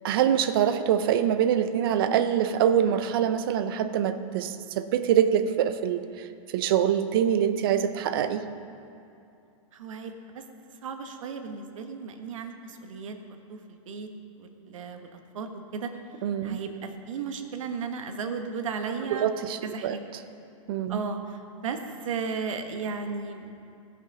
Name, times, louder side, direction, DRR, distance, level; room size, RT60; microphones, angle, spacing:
voice 1, 0.0-6.3 6.5-8.4 16.2-16.6 19.2-20.0 20.7-21.0, right 9 dB, 40° right, 10 dB, 0.6 m, -24 dB
voice 2, 9.7-10.4 10.8-13.2 13.5-14.1 14.4-15.9 16.4-19.3 19.6-20.0 20.9-23.5, right 5 dB, 65° right, 5 dB, 1.2 m, -35 dB
15.5 x 5.9 x 6.1 m, 2.6 s
hypercardioid pair, 165°, 18 cm